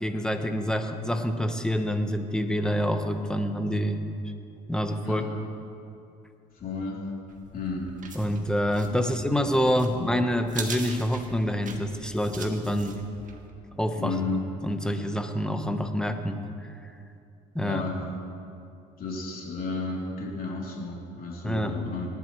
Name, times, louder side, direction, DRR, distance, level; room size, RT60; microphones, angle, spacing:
voice 1, 0.0-4.0 4.7-5.2 8.1-13.0 13.7-14.1 14.6-16.4 17.5-17.8 21.4-21.8, equal, 5° left, 6 dB, 1.2 m, -27 dB
voice 2, 6.5-7.0 7.5-8.0 8.9-9.4 9.9-10.1 14.0-14.4 17.6-18.1 19.0-22.1, left 3 dB, 50° left, -3 dB, 3.4 m, -33 dB
sound 1, 7.3-13.5, right 5 dB, 45° right, 1.7 m, -42 dB
19.0 x 11.0 x 3.2 m, 2.5 s
supercardioid pair, 70°, 19 cm